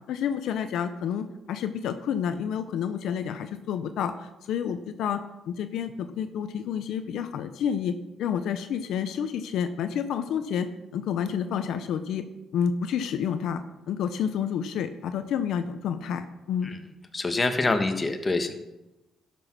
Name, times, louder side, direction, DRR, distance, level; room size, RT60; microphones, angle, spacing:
voice 1, 0.1-12.2 12.5-13.6 13.9-16.7, left 8 dB, 80° left, 10 dB, 0.6 m, -29 dB
voice 2, 17.1-18.5, left 3 dB, 25° left, 7 dB, 1.3 m, -26 dB
12.0 x 6.1 x 6.0 m, 0.98 s
cardioid pair, 90°, 0 cm